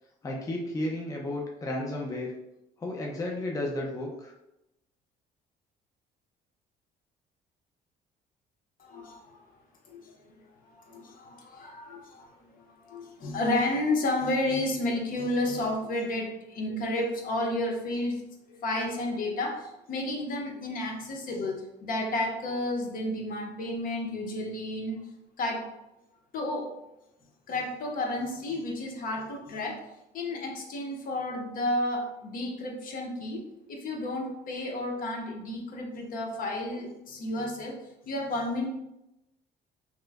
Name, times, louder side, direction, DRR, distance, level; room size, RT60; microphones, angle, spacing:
voice 1, 0.2-2.3 2.8-4.3, left 1 dB, 20° left, 0 dB, 0.5 m, -33 dB
voice 2, 8.8-9.4 9.9-10.2 10.7-18.2 18.5-25.0 25.4-25.7 26.3-26.7 27.5-29.8 30.1-33.4 33.7-38.7, left 1 dB, 55° left, 1 dB, 0.8 m, -31 dB
3.0 x 2.1 x 3.4 m, 0.87 s
cardioid pair, 110°, 17 cm